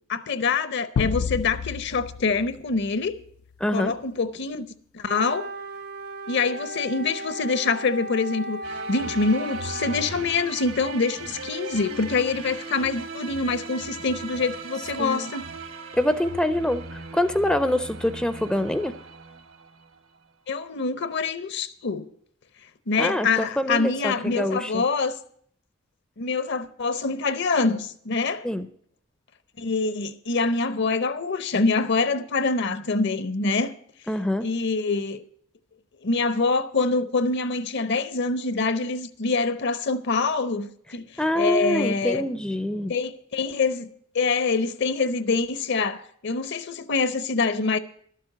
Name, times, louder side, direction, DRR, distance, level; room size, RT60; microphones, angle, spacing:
voice 1, 0.1-3.1 3.7-4.7 4.9-5.5 6.3-15.4 20.5-22.1 22.9-25.2 26.2-28.5 29.6-33.7 34.4-35.2 36.0-41.1 41.3-42.2 42.9-43.9 44.1-47.8, left 4 dB, 55° left, 0.7 m, -25 dB
sound 1, 1.0-3.5, left 6 dB, 85° left, 0.4 m, -30 dB
voice 2, 3.6-4.0 15.0-15.3 15.9-19.0 23.0-24.8 28.4-28.7 34.1-34.5 41.2-42.9, left 1 dB, 5° left, 0.4 m, -25 dB
Wind instrument woodwind instrument, 5.0-10.3, right 1 dB, 50° right, 0.6 m, -36 dB
sound 2, 8.6-20.0, right 3 dB, 80° right, 1.3 m, -38 dB
12.0 x 7.5 x 7.8 m
head